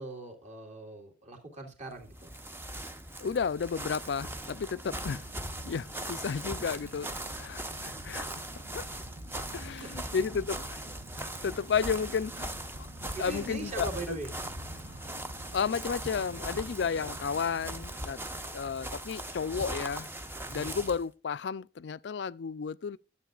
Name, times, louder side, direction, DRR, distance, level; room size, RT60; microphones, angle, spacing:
voice 1, 0.0-2.3 9.6-10.1 13.1-14.3 18.2-18.8 20.4-20.7, right 2 dB, 40° right, 2.4 m, -42 dB
sound 1, 2.0-21.1, right 1 dB, 15° right, 0.7 m, -40 dB
voice 2, 3.2-5.2 5.6-8.4 8.7-8.9 9.5-10.8 11.2-12.9 13.2-14.2 14.9-15.1 15.5-18.2 18.5-20.1 20.5-23.0, left 6 dB, 75° left, 0.4 m, -33 dB
sound 2, 4.9-17.8, right 1 dB, 65° right, 1.1 m, -49 dB
12.5 x 7.8 x 2.4 m
head